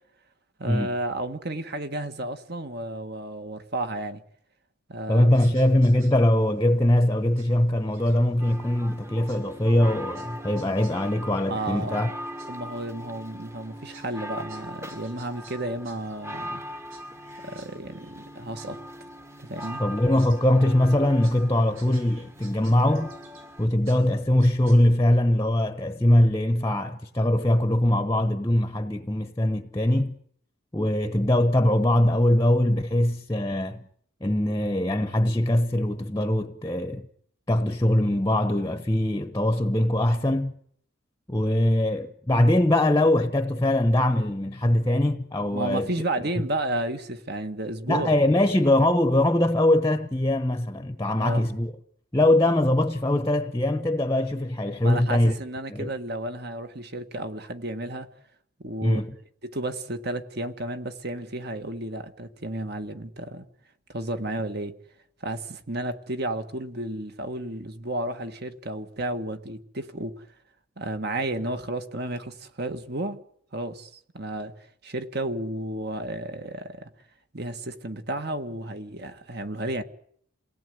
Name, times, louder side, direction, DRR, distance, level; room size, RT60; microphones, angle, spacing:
voice 1, 0.6-4.2 4.9-5.3 11.5-12.0 12.5-16.6 17.4-18.8 19.4-19.8 45.5-48.1 51.1-51.4 54.8-58.1 58.6-59.0 59.4-63.4 63.9-64.8 65.2-70.3 70.8-73.2 73.5-74.5 74.8-76.9 77.3-79.8, right 1 dB, 50° right, 1.7 m, -32 dB
voice 2, 5.1-12.1 19.8-23.1 23.6-30.2 30.7-33.8 34.2-37.1 37.5-40.5 41.3-45.9 47.9-51.7 52.1-55.4 55.7-55.9 58.8-59.1, left 1 dB, 15° left, 1.0 m, -22 dB
sound 1, 5.3-24.9, right 4 dB, 70° right, 7.3 m, -56 dB
sound 2, 8.4-23.7, equal, 10° right, 1.1 m, -40 dB
28.0 x 18.0 x 9.4 m
head